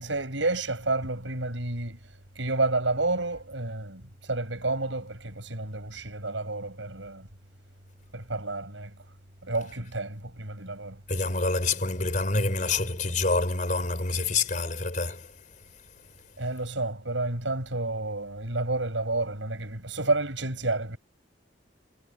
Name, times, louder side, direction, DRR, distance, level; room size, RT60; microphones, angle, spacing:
voice 1, 0.0-2.1 2.3-7.3 8.1-9.0 9.4-11.0 16.4-21.0, right 2 dB, 85° right, 6.3 m, -30 dB
voice 2, 11.1-16.1, left 3 dB, 45° left, 4.5 m, -28 dB
head